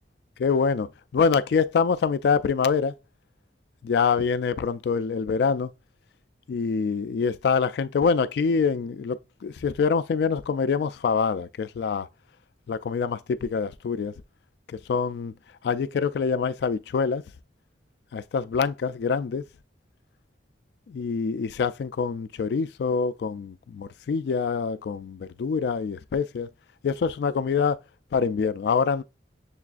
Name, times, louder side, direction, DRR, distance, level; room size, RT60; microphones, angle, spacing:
voice 1, 0.4-2.9 3.8-5.7 6.5-12.1 12.7-14.1 14.7-15.3 15.6-17.2 18.1-19.4 20.9-26.5 26.8-27.8 28.1-29.0, left 5 dB, 65° left, 0.3 m, -25 dB
6.8 x 2.4 x 2.4 m
head